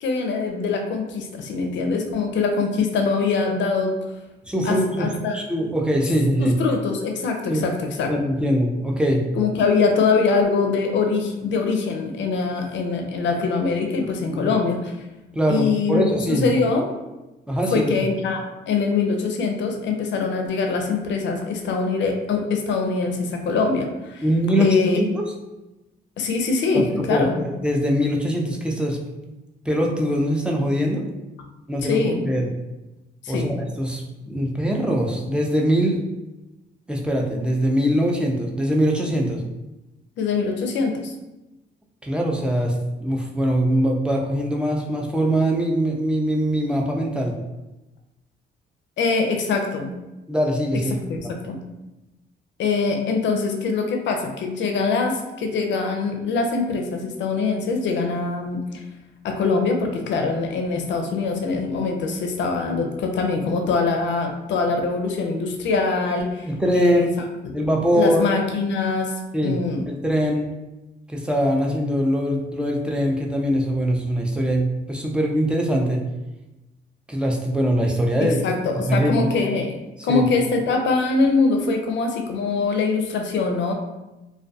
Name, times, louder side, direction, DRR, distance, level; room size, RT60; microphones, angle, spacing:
voice 1, 0.0-3.9 4.6-5.4 6.4-8.1 9.4-14.9 15.5-16.9 17.7-18.4 18.7-24.2 24.6-25.0 26.2-27.3 31.8-32.3 33.2-33.5 40.2-41.1 49.0-49.9 50.9-51.6 52.6-58.6 59.2-66.5 66.7-67.1 67.9-69.1 69.4-69.8 78.4-79.8 80.0-83.7, left 4 dB, 65° left, 3 dB, 0.5 m, -23 dB
voice 2, 4.5-6.5 7.5-7.6 8.1-9.2 14.3-14.5 15.3-16.5 17.5-17.9 24.2-25.3 26.7-29.0 29.2-29.3 29.7-31.0 31.7-32.5 33.3-36.0 36.9-39.4 42.0-42.7 43.0-47.3 50.3-50.9 66.5-67.1 67.5-68.2 69.3-69.6 69.9-70.5 71.1-76.0 77.1-78.4 78.7-79.3 80.0-80.3, equal, 5° right, 0 dB, 0.4 m, -22 dB
2.3 x 2.2 x 2.6 m, 1.0 s
cardioid pair, 90°, 20 cm